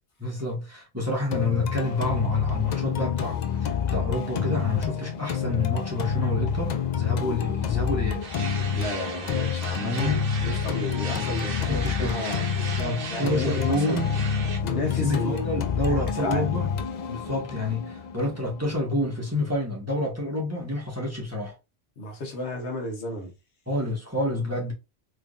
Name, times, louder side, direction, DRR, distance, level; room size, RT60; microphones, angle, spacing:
voice 1, 0.2-8.2 9.8-10.3 11.1-11.2 11.5-12.1 12.8-14.2 14.9-16.7 17.1-21.5 23.7-24.7, left 1 dB, 15° right, 1.4 m, -28 dB
sound 1, 1.3-19.3, left 7 dB, 55° left, 0.5 m, -28 dB
sound 2, 8.2-14.6, right 5 dB, 60° right, 0.9 m, -37 dB
voice 2, 8.7-12.4 13.1-14.0 14.6-16.5 17.2-17.3 22.0-23.3, left 1 dB, 75° left, 1.3 m, -33 dB
3.6 x 3.2 x 2.5 m
omnidirectional pair, 1.1 m